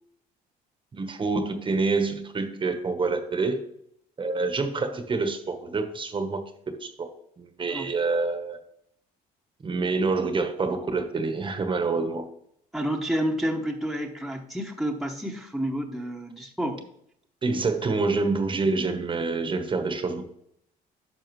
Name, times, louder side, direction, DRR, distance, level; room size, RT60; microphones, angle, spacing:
voice 1, 0.9-3.6 4.2-6.4 6.7-7.1 7.4-8.6 9.6-12.3 17.4-20.2, right 3 dB, 30° right, 8 dB, 1.1 m, -27 dB
voice 2, 12.7-16.8, equal, ahead, 1 dB, 1.0 m, -29 dB
10.0 x 6.2 x 3.1 m, 0.71 s
cardioid pair, 110°, 17 cm